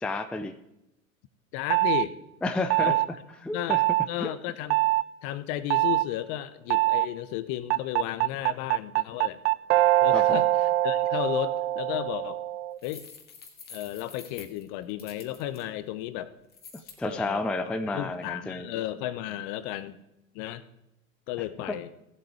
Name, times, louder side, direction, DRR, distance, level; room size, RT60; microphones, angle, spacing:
voice 1, 0.0-0.5 2.4-2.9 3.4-3.8 4.2-4.3 10.1-10.4 16.7-18.7 21.6-21.8, left 2 dB, 5° left, 9 dB, 0.5 m, -31 dB
voice 2, 1.5-2.1 2.8-3.0 3.5-3.8 4.1-4.8 5.2-9.4 10.0-10.5 10.8-12.4 12.8-13.0 13.7-16.3 17.0-20.0 20.3-20.6 21.3-21.9, left 13 dB, 45° left, 15 dB, 1.0 m, -33 dB
sound 1, 1.7-2.1 2.7-3.1 3.7-4.1 4.7-5.0 5.7-6.1 6.7-7.1 7.7-12.8, right 16 dB, 50° right, 0.6 m, -23 dB
sound 2, 12.8-15.6 16.5-17.0, left 6 dB, 25° left, 1.9 m, -47 dB
16.0 x 7.8 x 4.8 m, 0.88 s
figure-of-eight pair, 85°, 42 cm